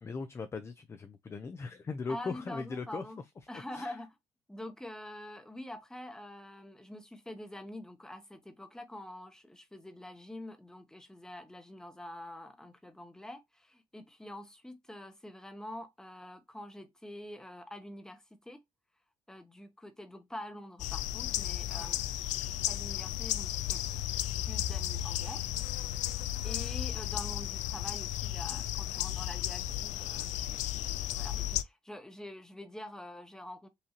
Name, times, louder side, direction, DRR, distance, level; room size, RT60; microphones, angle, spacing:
voice 1, 0.0-3.0 3.7-4.0, left 4 dB, 20° left, 0.4 m, -39 dB
voice 2, 2.1-3.2 3.5-4.1 4.5-18.6 19.3-22.0 22.7-23.9 24.5-25.4 26.4-30.6 30.9-33.7, left 1 dB, 5° left, 0.8 m, -46 dB
sound 1, 20.8-31.6, left 13 dB, 90° left, 0.4 m, -34 dB
5.5 x 2.6 x 2.9 m
cardioid pair, 140°, 12 cm